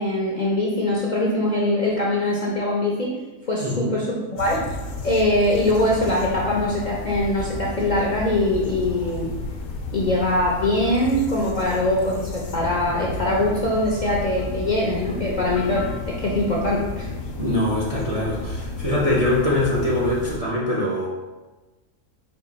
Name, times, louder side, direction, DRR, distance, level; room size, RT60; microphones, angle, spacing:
voice 1, 0.0-3.1 3.5-4.6 5.0-9.3 9.9-17.1, left 1 dB, 55° left, -4 dB, 0.5 m, -22 dB
voice 2, 3.6-4.0 17.4-21.1, left 1 dB, 50° right, -5 dB, 0.4 m, -23 dB
sound 1, 4.4-20.4, left 2 dB, 75° left, 1.0 m, -32 dB
4.4 x 2.4 x 4.0 m, 1.2 s
omnidirectional pair, 1.4 m